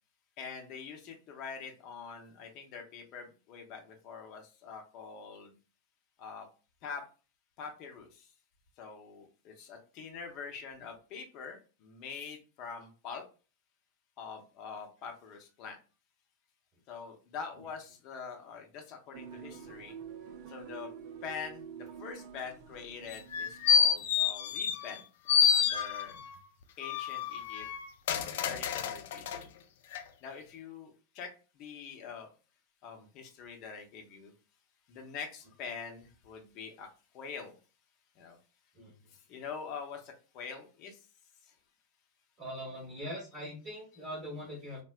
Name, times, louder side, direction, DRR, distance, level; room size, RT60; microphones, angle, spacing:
voice 1, 0.4-5.6 6.2-6.5 6.8-7.0 7.6-8.3 8.8-13.2 14.2-15.8 16.9-19.9 20.5-20.9 21.2-25.0 25.3-26.2 26.8-27.7 28.4-29.5 30.2-32.3 32.8-34.3 34.9-36.9 37.1-37.6 38.2-38.4 39.1-41.0 41.4-41.5, left 6 dB, 40° left, 3 dB, 0.7 m, -44 dB
sound 1, 19.1-24.3, right 7 dB, 45° right, 0.4 m, -48 dB
sound 2, 23.1-25.0 25.3-26.3 26.8-29.4 29.9-30.0, left 7 dB, 55° left, 0.3 m, -28 dB
voice 2, 42.4-44.8, equal, 30° right, -2 dB, 0.9 m, -41 dB
3.6 x 2.0 x 2.3 m, 0.34 s
figure-of-eight pair, 90°, 0 cm